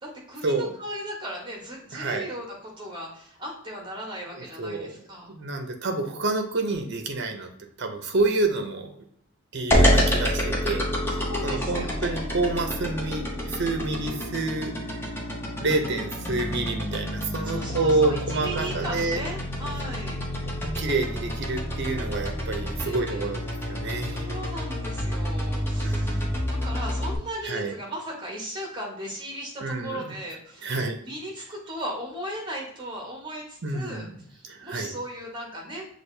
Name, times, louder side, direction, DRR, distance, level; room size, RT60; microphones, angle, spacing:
voice 1, 0.0-5.3 11.1-12.2 17.4-20.2 22.8-23.3 24.1-30.7 31.0-35.9, equal, 20° right, -1 dB, 1.2 m, -37 dB
voice 2, 1.9-2.3 4.6-5.0 5.3-7.5 7.8-9.0 9.5-14.8 15.6-19.2 20.8-24.2 25.8-26.3 27.4-27.7 29.6-30.0 30.6-31.0 33.6-34.1 34.4-34.9, right 3 dB, 50° right, 5 dB, 0.6 m, -28 dB
sound 1, 9.7-27.2, equal, 10° left, 0.6 m, -28 dB
6.0 x 2.5 x 3.3 m, 0.69 s
head